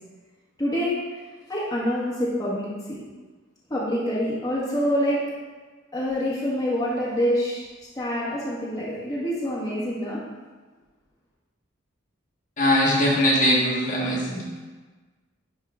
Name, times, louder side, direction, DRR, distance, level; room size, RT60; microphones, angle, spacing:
voice 1, 0.6-1.0 1.5-3.0 3.7-5.2 5.9-7.6 7.9-10.2, equal, 20° left, -7 dB, 1.4 m, -26 dB
voice 2, 12.6-14.4, equal, 40° left, -5 dB, 1.5 m, -21 dB
11.0 x 3.8 x 3.6 m, 1.3 s
head